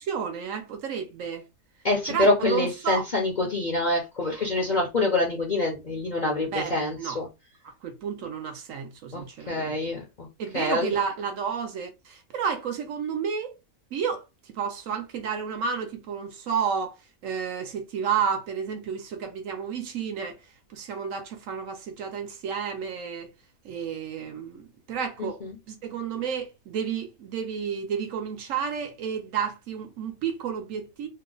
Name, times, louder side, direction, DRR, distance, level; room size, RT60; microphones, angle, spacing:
voice 1, 0.0-1.4 2.1-3.0 6.5-7.2 7.6-9.8 10.4-13.6 13.9-14.2 14.5-16.9 17.2-20.4 20.7-23.3 23.6-25.4 25.7-31.1, right 7 dB, 65° right, 1.0 m, -31 dB
voice 2, 1.8-7.3 9.1-10.3 10.5-10.9 25.2-25.5, left 2 dB, 45° left, 0.6 m, -26 dB
2.8 x 2.1 x 3.8 m
omnidirectional pair, 1.5 m